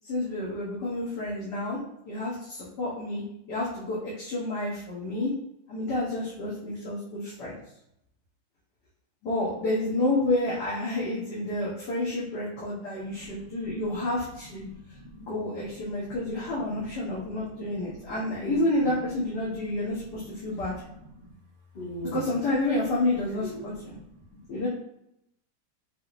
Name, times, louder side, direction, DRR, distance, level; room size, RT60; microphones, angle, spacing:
voice 1, 0.0-1.8 2.1-5.3 5.7-7.6 9.2-14.6 15.2-20.7 22.1-23.9 24.5-24.7, left 2 dB, 85° left, -7 dB, 1.8 m, -29 dB
voice 2, 13.0-14.1 14.6-15.2 15.7-16.3 16.7-18.6 19.4-19.8 20.1-20.9 21.1-21.3 21.7-22.4 23.3-24.7, equal, 35° left, -8 dB, 1.1 m, -44 dB
5.4 x 3.4 x 2.6 m, 0.79 s
omnidirectional pair, 1.8 m